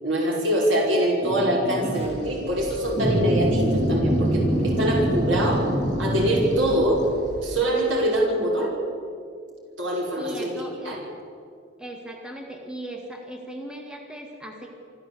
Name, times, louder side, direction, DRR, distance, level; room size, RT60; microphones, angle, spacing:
voice 1, 0.0-5.7 6.0-7.1 7.4-8.7 9.8-10.5 10.8-11.0, right 1 dB, 90° right, -2 dB, 5.7 m, -24 dB
sound 1, 1.2-2.1 3.0-6.5, equal, 30° right, 4.3 m, -24 dB
sound 2, 2.0-7.5, equal, 60° left, 7.7 m, -40 dB
voice 2, 10.2-11.0 11.8-14.7, right 1 dB, 5° right, 2 dB, 1.9 m, -38 dB
25.0 x 15.0 x 8.3 m, 2.4 s
head